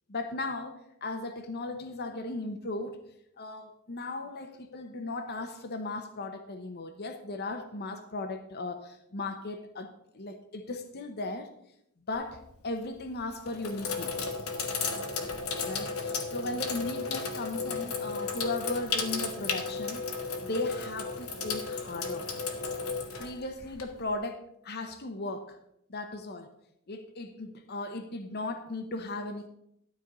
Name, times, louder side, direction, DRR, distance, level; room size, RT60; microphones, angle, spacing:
voice 1, 0.1-3.0 3.4-11.5 12.1-14.2 15.6-22.3 23.2-25.6 25.9-26.5 26.9-29.5, left 2 dB, 50° left, 6 dB, 0.9 m, -37 dB
Sink (filling or washing), 12.1-12.6 13.2-24.1, left 4 dB, 80° left, 1.5 m, -34 dB
12.5 x 4.5 x 6.7 m, 0.76 s
head